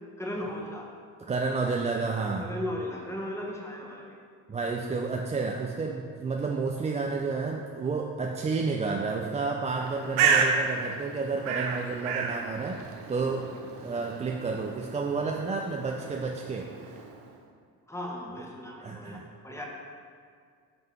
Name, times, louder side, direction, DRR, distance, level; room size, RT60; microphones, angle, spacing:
voice 1, 0.2-0.9 2.4-4.2 10.1-10.3 13.2-13.5 17.9-19.2 19.4-19.7, left 1 dB, 5° left, -1 dB, 1.2 m, -37 dB
voice 2, 1.3-2.5 4.5-13.5 13.8-17.0 18.8-19.3, right 4 dB, 15° right, 1 dB, 0.3 m, -31 dB
Bird, 9.7-17.3, right 5 dB, 85° right, 0.8 m, -31 dB
8.0 x 3.5 x 4.4 m, 2.1 s
supercardioid pair, 75°, 44 cm